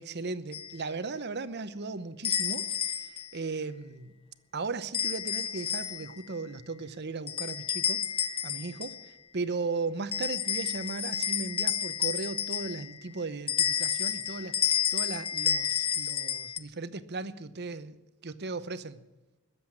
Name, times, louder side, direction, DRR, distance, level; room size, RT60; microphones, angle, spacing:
voice 1, 0.0-4.1 4.5-8.1 8.4-18.0 18.2-19.0, right 3 dB, 50° right, 13 dB, 0.9 m, -37 dB
sound 1, 0.5-0.7 2.2-3.3 4.9-6.2 7.3-9.1 10.1-13.0 13.5-16.6, left 8 dB, 25° left, 0.7 m, -30 dB
21.0 x 7.9 x 8.7 m, 1.1 s
head